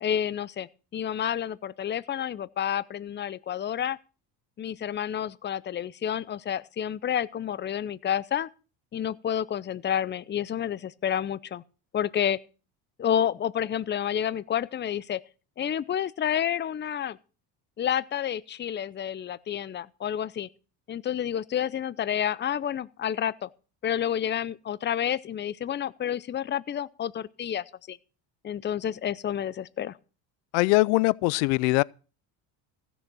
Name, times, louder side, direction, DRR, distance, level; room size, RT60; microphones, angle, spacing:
voice 1, 0.0-4.0 4.6-8.5 8.9-11.6 11.9-12.4 13.0-15.2 15.6-17.2 17.8-20.5 20.9-23.5 23.8-28.0 28.4-30.0, left 9 dB, 25° left, 0.6 m, -29 dB
voice 2, 30.5-31.8, left 24 dB, 85° left, 0.5 m, -22 dB
15.5 x 6.9 x 6.2 m
supercardioid pair, 100°, 45 cm